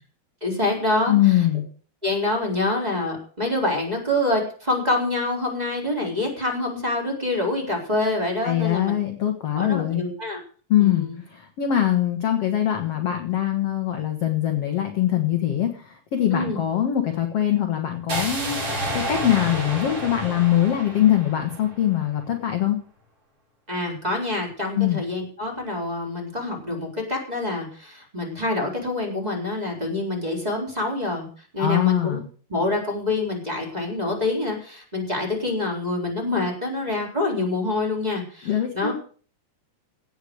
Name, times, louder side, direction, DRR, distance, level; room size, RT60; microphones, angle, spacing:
voice 1, 0.4-1.4 2.0-8.9 9.5-10.4 10.8-11.2 16.3-16.6 23.7-31.3 31.5-32.2 32.5-38.9, left 2 dB, 10° right, -1 dB, 3.8 m, -26 dB
voice 2, 1.1-1.6 8.4-10.0 10.7-22.8 24.7-25.0 31.6-32.2 38.4-38.9, left 11 dB, 60° left, 4 dB, 1.6 m, -22 dB
sound 1, 18.1-22.1, right 1 dB, 35° right, 6.7 m, -30 dB
17.5 x 6.6 x 8.0 m, 0.43 s
omnidirectional pair, 4.8 m